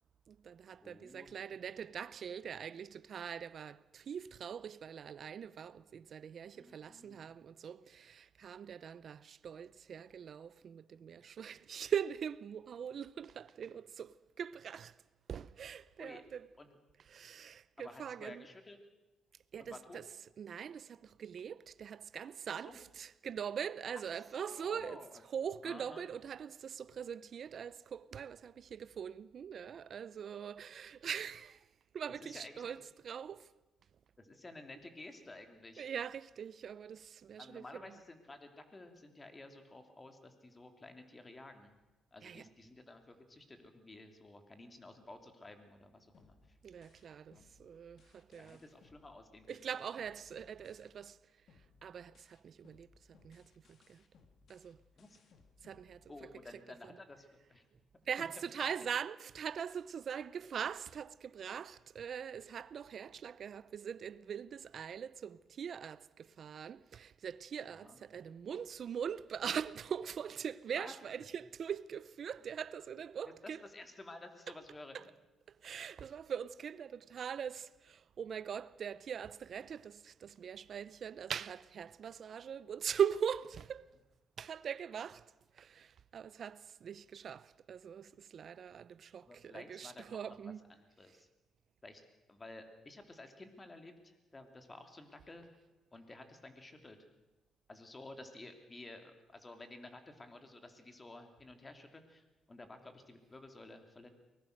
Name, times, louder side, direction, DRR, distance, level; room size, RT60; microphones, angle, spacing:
voice 1, 0.3-15.0 15.3-16.5 17.0-18.5 19.5-31.7 31.9-33.5 35.8-38.0 42.2-42.5 46.6-48.7 49.5-51.2 51.8-54.0 54.5-54.8 55.6-57.0 58.1-73.7 74.5-74.6 74.9-75.2 75.5-83.9 84.4-90.7 91.1-91.2, right 8 dB, 55° right, 0.7 m, -42 dB
voice 2, 0.8-1.4 6.5-7.3 16.0-16.2 16.6-16.8 17.8-18.8 19.6-20.0 22.6-22.8 23.9-24.1 24.5-25.1 25.6-26.1 32.2-32.8 34.2-35.9 37.4-41.8 42.1-46.6 47.3-47.5 48.3-49.5 55.0-55.2 56.1-57.6 58.2-58.3 58.6-58.7 67.7-68.0 70.7-70.9 73.4-75.1 89.2-91.3 91.8-92.0 92.3-95.5 95.9-97.0 97.7-104.1, left 2 dB, 25° left, 2.8 m, -53 dB
sound 1, 46.1-51.2 51.5-56.5, left 4 dB, 60° left, 2.2 m, -67 dB
23.5 x 20.0 x 6.6 m
cardioid pair, 90°, 0 cm